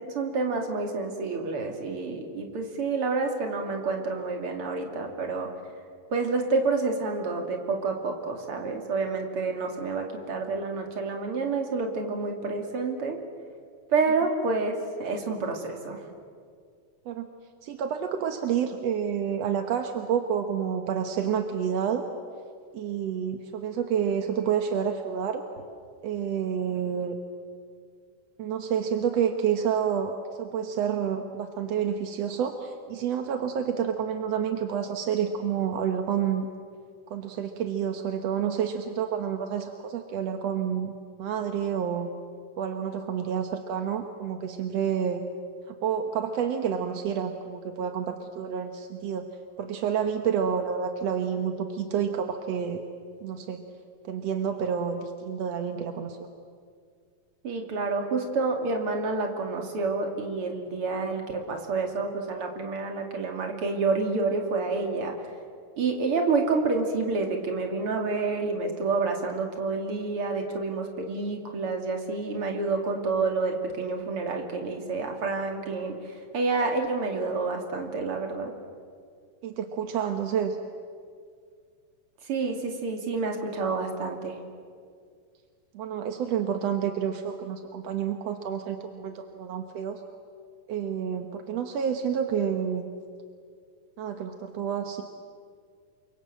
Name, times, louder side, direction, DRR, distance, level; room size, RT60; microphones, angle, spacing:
voice 1, 0.1-5.5 6.1-13.2 13.9-14.7 15.0-16.0 57.4-65.1 65.8-78.5 82.3-84.4, right 3 dB, 40° right, 3 dB, 3.1 m, -28 dB
voice 2, 17.6-22.0 22.7-25.4 26.0-27.2 28.4-30.1 30.4-36.5 37.1-40.9 41.2-42.1 42.6-45.2 45.7-49.3 49.6-52.8 53.2-53.6 54.0-56.3 79.4-80.6 85.7-90.0 90.7-92.9 94.0-95.0, right 8 dB, 65° right, 6 dB, 1.7 m, -29 dB
28.5 x 24.5 x 7.8 m, 2.1 s
omnidirectional pair, 4.3 m